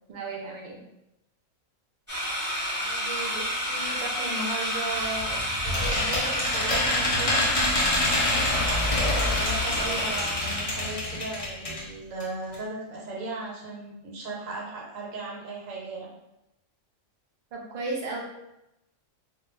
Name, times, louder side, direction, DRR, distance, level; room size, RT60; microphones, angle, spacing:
voice 1, 0.1-0.8 17.5-18.2, right 3 dB, 60° right, -1 dB, 0.5 m, -34 dB
sound 1, 2.1-10.9, equal, 10° right, 0.8 m, -30 dB
voice 2, 2.8-7.5 8.5-16.1, right 2 dB, 85° right, -3 dB, 1.1 m, -36 dB
sound 2, 5.0-11.9 12.2-12.3 12.5-12.6, left 2 dB, 45° left, 0.4 m, -27 dB
2.2 x 2.2 x 3.0 m, 0.90 s
omnidirectional pair, 1.3 m